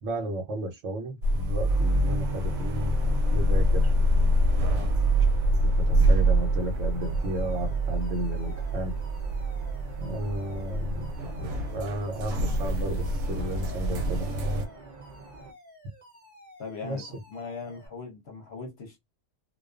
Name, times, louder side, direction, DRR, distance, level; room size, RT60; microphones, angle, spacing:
voice 1, 0.0-3.9 5.6-8.9 10.0-14.3 16.8-17.1, equal, 65° right, 1.0 m, -34 dB
sound 1, 1.2-14.6, right 1 dB, 90° right, 1.0 m, -25 dB
sound 2, 1.7-15.5, right 2 dB, 50° right, 0.5 m, -44 dB
Alarm, 7.0-17.9, left 1 dB, 10° left, 1.0 m, -53 dB
voice 2, 16.6-19.0, left 4 dB, 55° left, 0.8 m, -40 dB
2.3 x 2.3 x 2.3 m
omnidirectional pair, 1.4 m